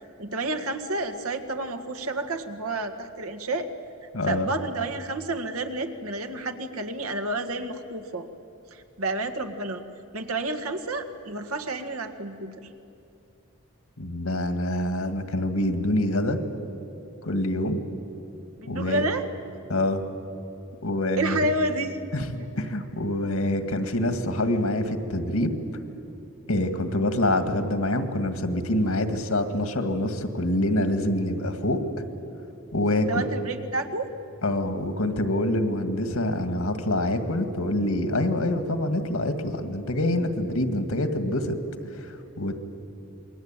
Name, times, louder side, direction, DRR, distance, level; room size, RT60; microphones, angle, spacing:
voice 1, 0.2-3.7 4.3-8.3 8.7-9.8 10.1-12.6 18.6-19.3 21.2-22.0 33.0-34.1, right 2 dB, 80° right, 7 dB, 1.9 m, -30 dB
voice 2, 4.1-4.5 14.0-16.4 17.2-17.8 18.7-19.1 19.7-20.0 20.8-21.5 22.1-25.5 26.5-31.8 32.7-33.1 34.4-41.6 42.0-42.6, left 1 dB, 75° left, 8 dB, 2.0 m, -26 dB
28.5 x 21.5 x 9.0 m, 2.9 s
head